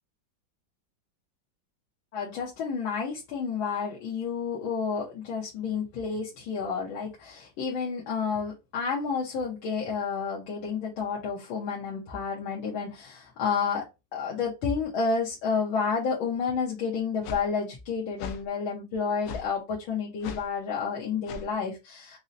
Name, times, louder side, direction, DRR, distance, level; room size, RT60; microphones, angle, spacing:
voice 1, 2.1-22.2, left 5 dB, 90° left, -3 dB, 1.7 m, -30 dB
sound 1, 17.2-17.4 18.2-18.4 19.2-19.5 20.2-20.5 21.3-21.5, left 5 dB, 75° left, 1.0 m, -37 dB
5.4 x 2.1 x 2.5 m, 0.24 s
omnidirectional pair, 2.2 m